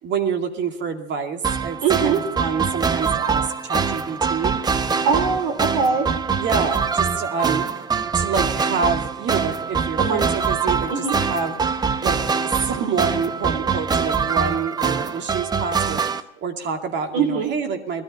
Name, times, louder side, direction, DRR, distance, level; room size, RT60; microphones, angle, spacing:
voice 1, 0.0-4.6 6.4-7.7 8.1-11.6 12.0-12.2 12.6-18.0, right 5 dB, 35° right, 5 dB, 2.4 m, -27 dB
sound 1, 1.4-16.2, right 5 dB, 10° right, 0.7 m, -23 dB
voice 2, 1.8-2.2 5.0-6.1 10.0-10.3 10.9-11.1 17.1-17.5, right 5 dB, 50° right, 7 dB, 3.9 m, -21 dB
20.0 x 13.0 x 4.2 m, 0.80 s
hypercardioid pair, 95°, 33 cm